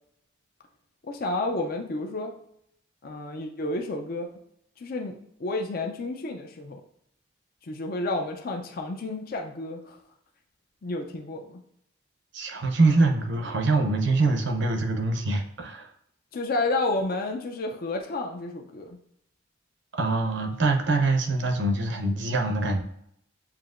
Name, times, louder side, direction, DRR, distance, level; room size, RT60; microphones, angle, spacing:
voice 1, 1.0-2.3 3.0-4.3 4.8-6.8 7.6-10.0 10.8-11.6 16.3-19.0, left 2 dB, 45° left, 3 dB, 0.4 m, -31 dB
voice 2, 12.3-15.9 19.9-22.8, right 3 dB, 60° right, 4 dB, 0.7 m, -24 dB
7.4 x 2.8 x 2.5 m, 0.74 s
head